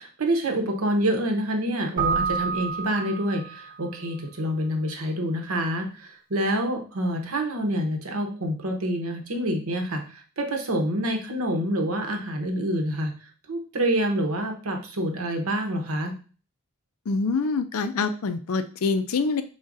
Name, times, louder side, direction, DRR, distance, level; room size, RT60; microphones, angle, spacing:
voice 1, 0.0-16.1, right 1 dB, 75° right, 4 dB, 0.9 m, -27 dB
Keyboard (musical), 2.0-3.8, right 6 dB, 20° right, 0.9 m, -28 dB
voice 2, 17.1-19.4, left 4 dB, 75° left, 10 dB, 0.5 m, -25 dB
5.0 x 3.8 x 2.6 m, 0.39 s
head